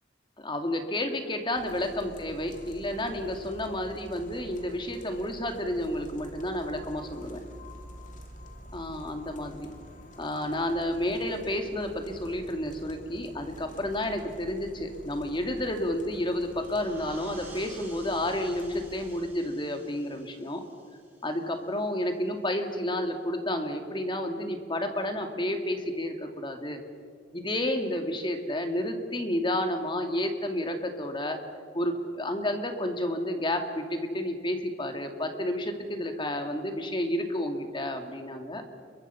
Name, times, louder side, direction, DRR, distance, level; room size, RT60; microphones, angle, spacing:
voice 1, 0.4-7.4 8.7-9.7 10.2-20.6 21.2-26.8 27.3-31.4 31.7-38.6, left 1 dB, 25° left, 5 dB, 2.2 m, -31 dB
sound 1, 1.5-19.2, equal, 45° left, 2.7 m, -48 dB
sound 2, 16.4-21.7, right 3 dB, 10° right, 5.9 m, -52 dB
29.0 x 23.0 x 5.7 m, 2.2 s
head